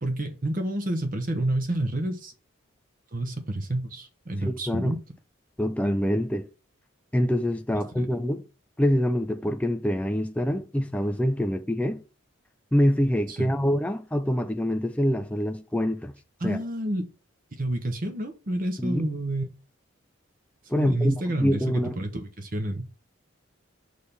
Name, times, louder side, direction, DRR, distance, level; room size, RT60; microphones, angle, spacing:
voice 1, 0.0-2.3 3.1-5.0 8.0-8.1 13.3-13.5 16.4-17.1 17.5-19.5 20.8-22.9, right 1 dB, 40° right, 0.8 m, -29 dB
voice 2, 4.4-4.9 5.6-6.5 7.1-8.4 8.8-12.0 12.7-16.1 16.4-16.6 18.8-19.1 20.7-22.0, equal, 5° left, 0.3 m, -25 dB
6.4 x 3.3 x 5.6 m
head